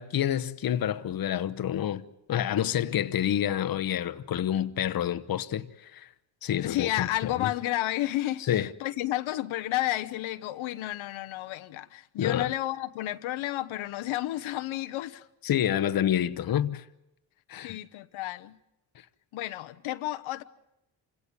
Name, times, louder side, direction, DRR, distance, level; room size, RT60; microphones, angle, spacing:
voice 1, 0.0-6.1 6.4-7.5 8.5-8.7 12.2-12.5 15.4-16.8 17.5-17.8, left 10 dB, 50° left, 1.0 m, -28 dB
voice 2, 6.5-15.3 17.6-18.6 19.3-20.4, left 15 dB, 90° left, 1.0 m, -31 dB
27.0 x 17.0 x 9.6 m
cardioid pair, 105°, 47 cm